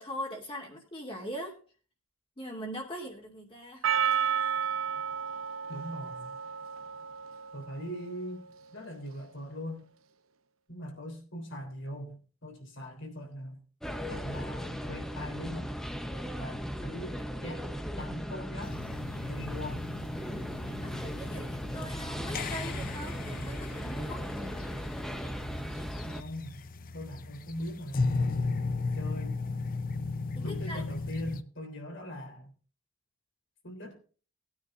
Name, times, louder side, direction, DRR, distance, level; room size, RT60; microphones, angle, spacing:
voice 1, 0.0-1.5 2.4-3.9 20.6-24.3 30.3-30.8, equal, 25° left, 2.5 m, -41 dB
Percussion, 3.8-8.1, right 8 dB, 75° right, 0.8 m, -32 dB
voice 2, 5.7-6.4 7.5-8.4 8.7-9.9 10.7-13.6 14.1-15.7 16.4-17.6 17.9-18.8 19.1-19.8 26.1-26.6 26.9-28.7 28.9-29.4 30.4-32.5 33.6-34.0, equal, 60° left, 3.5 m, -41 dB
sound 1, 13.8-26.2, equal, ahead, 0.8 m, -37 dB
sound 2, 18.6-31.4, left 3 dB, 40° left, 0.6 m, -36 dB
19.0 x 9.7 x 2.5 m
head